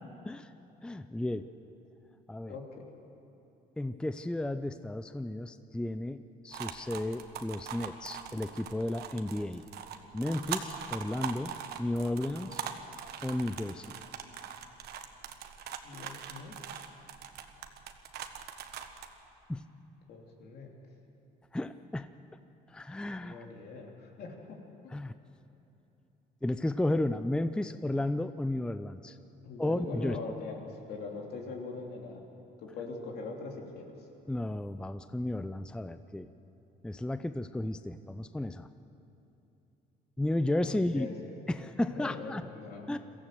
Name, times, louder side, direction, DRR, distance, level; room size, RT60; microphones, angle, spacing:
voice 1, 0.8-1.5 2.3-2.6 3.8-9.6 10.1-12.6 13.2-13.9 19.5-19.6 21.5-22.1 22.7-23.5 24.9-25.1 26.4-29.2 29.6-30.2 34.3-36.3 36.8-38.7 40.2-41.1 41.5-42.4 42.9-43.0, left 1 dB, 5° left, 11 dB, 0.5 m, -33 dB
voice 2, 2.5-2.8 15.8-16.5 20.1-20.7 23.2-24.6 29.4-32.2 32.6-33.9 40.6-41.1 41.6-42.9, left 3 dB, 70° left, 1 dB, 3.2 m, -42 dB
sound 1, 6.5-19.1, right 8 dB, 75° right, 1.3 m, -41 dB
22.5 x 15.0 x 7.8 m, 3.0 s
cardioid pair, 110°, 17 cm